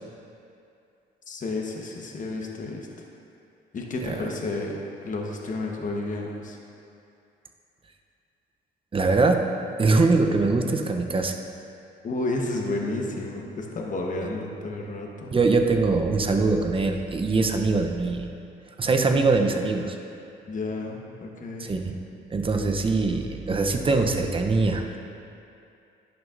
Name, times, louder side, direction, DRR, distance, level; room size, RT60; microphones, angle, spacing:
voice 1, 1.3-2.9 3.7-6.6 12.0-15.3 20.5-21.7, left 2 dB, 40° left, 0 dB, 1.1 m, -31 dB
voice 2, 8.9-9.4 9.8-11.4 15.3-18.3 18.8-20.0 21.6-21.9 22.3-25.0, right 3 dB, 25° right, 4 dB, 0.6 m, -22 dB
11.0 x 6.3 x 2.5 m, 2.6 s
cardioid pair, 90°, 20 cm